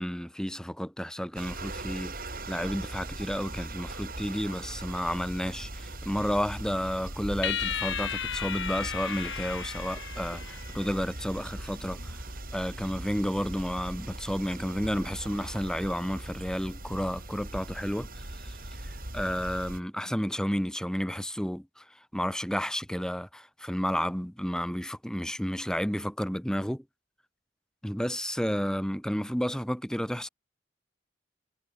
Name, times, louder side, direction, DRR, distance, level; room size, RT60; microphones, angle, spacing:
voice 1, 0.0-12.3 12.5-18.6 18.8-21.8 22.1-26.8 27.8-30.3, equal, 5° left, 2.5 m, -31 dB
sound 1, 1.4-19.8, right 2 dB, 50° right, 7.4 m, -40 dB
sound 2, 7.4-11.0, left 8 dB, 80° left, 2.7 m, -34 dB
head